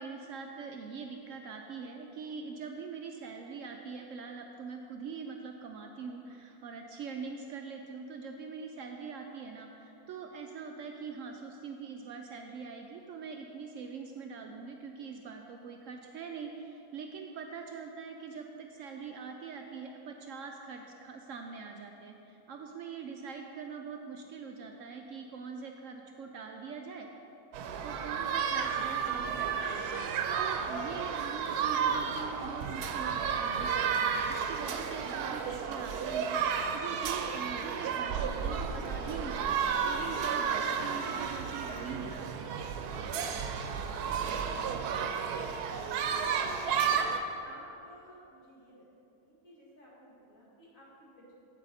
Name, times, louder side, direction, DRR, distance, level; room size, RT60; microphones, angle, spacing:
voice 1, 0.0-27.1 27.8-42.6, right 5 dB, 70° right, 3 dB, 0.8 m, -43 dB
sound 1, 27.5-47.2, right 6 dB, 85° right, 1.1 m, -32 dB
voice 2, 43.4-46.4 47.4-48.9 49.2-51.3, equal, 60° left, -6 dB, 2.5 m, -56 dB
8.3 x 8.2 x 4.1 m, 2.8 s
omnidirectional pair, 1.6 m